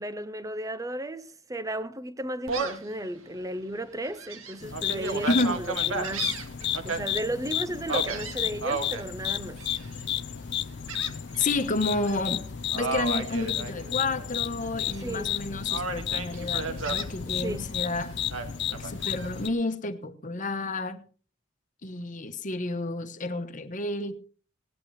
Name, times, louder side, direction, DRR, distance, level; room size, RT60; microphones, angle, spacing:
voice 1, 0.0-6.4 6.8-9.6 15.0-15.3 17.2-17.7, right 1 dB, 15° right, 0.7 m, -34 dB
Gull seagull, 2.5-2.9 3.4-3.5 4.0-7.0 7.9-9.0 9.6-10.0 10.9-11.6 11.9-12.2 12.7-14.3 14.6-15.3 15.7-17.1 18.3-19.3, right 4 dB, 80° right, 1.9 m, -33 dB
sound 1, 4.6-19.5, left 10 dB, 55° left, 0.5 m, -33 dB
voice 2, 5.2-5.6 11.4-12.5 12.7-18.2 18.7-21.0 21.8-24.1, left 2 dB, 40° left, 1.1 m, -30 dB
18.0 x 11.0 x 3.2 m
head